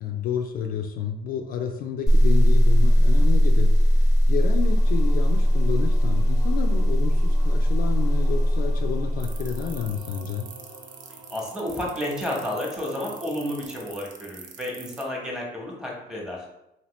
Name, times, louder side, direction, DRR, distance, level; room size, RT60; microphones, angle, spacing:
voice 1, 0.0-10.5, left 7 dB, 60° left, 4 dB, 0.4 m, -31 dB
sound 1, 2.1-9.9, equal, 20° left, 0.6 m, -19 dB
sound 2, 4.6-13.7, right 1 dB, 85° right, 1.1 m, -48 dB
sound 3, 9.2-15.0, right 7 dB, 50° right, 0.5 m, -43 dB
voice 2, 11.3-16.5, left 1 dB, 5° right, -4 dB, 1.0 m, -31 dB
2.9 x 2.7 x 3.0 m, 0.87 s
cardioid pair, 110°, 17 cm